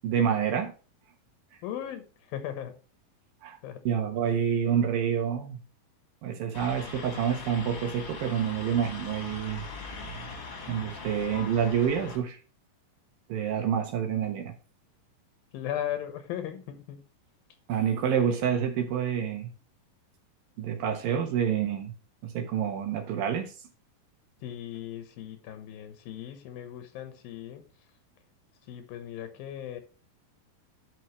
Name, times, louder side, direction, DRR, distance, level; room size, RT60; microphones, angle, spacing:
voice 1, 0.0-0.7 3.4-3.6 3.8-5.6 6.2-9.7 10.7-12.4 13.3-14.5 17.7-19.5 20.6-21.9 22.2-23.5, right 8 dB, 75° right, 3 dB, 3.0 m, -28 dB
voice 2, 1.6-2.7 3.6-3.8 15.5-17.0 24.4-27.6 28.7-29.8, left 11 dB, 85° left, 8 dB, 3.0 m, -37 dB
sound 1, 6.5-12.2, left 4 dB, 40° left, 1.9 m, -41 dB
10.5 x 6.1 x 3.2 m, 0.35 s
omnidirectional pair, 4.1 m